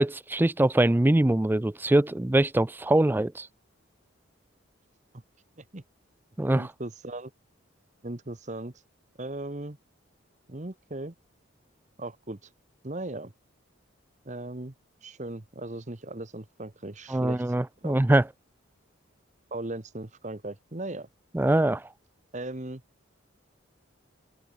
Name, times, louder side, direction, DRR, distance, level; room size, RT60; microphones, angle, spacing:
voice 1, 0.0-3.5 6.4-6.7 17.1-18.2 21.3-21.8, right 1 dB, 10° right, 0.3 m, -23 dB
voice 2, 6.5-7.3 8.0-8.8 9.2-9.8 10.5-11.1 12.0-12.5 12.8-13.3 14.2-14.7 15.0-18.2 19.5-21.1 22.3-22.8, right 2 dB, 35° right, 1.2 m, -38 dB
open air
head